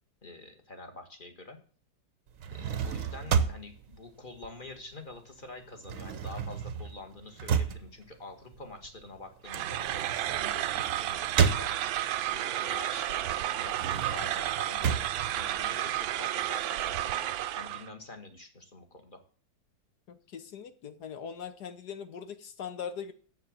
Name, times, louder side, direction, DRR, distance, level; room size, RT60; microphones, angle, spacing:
voice 1, 0.2-1.6 2.5-19.2, left 2 dB, 25° left, 5 dB, 1.8 m, -47 dB
sound 1, 2.3-5.1 5.4-12.2 12.7-16.2, right 7 dB, 55° right, 1.1 m, -32 dB
sound 2, 9.5-17.9, right 13 dB, 90° right, 1.5 m, -32 dB
voice 2, 20.1-23.1, left 7 dB, 60° left, 10 dB, 1.4 m, -41 dB
10.0 x 8.0 x 7.4 m, 0.42 s
omnidirectional pair, 2.1 m